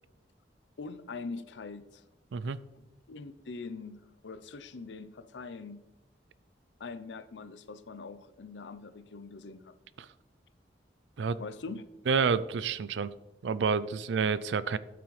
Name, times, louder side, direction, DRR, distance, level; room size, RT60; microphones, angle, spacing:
voice 1, 0.8-2.0 3.1-5.8 6.8-9.7 11.4-11.9, left 4 dB, 80° left, 13 dB, 0.5 m, -43 dB
voice 2, 12.1-13.1 13.4-14.8, right 5 dB, 80° right, 17 dB, 0.4 m, -28 dB
12.5 x 6.0 x 3.2 m, 1.0 s
head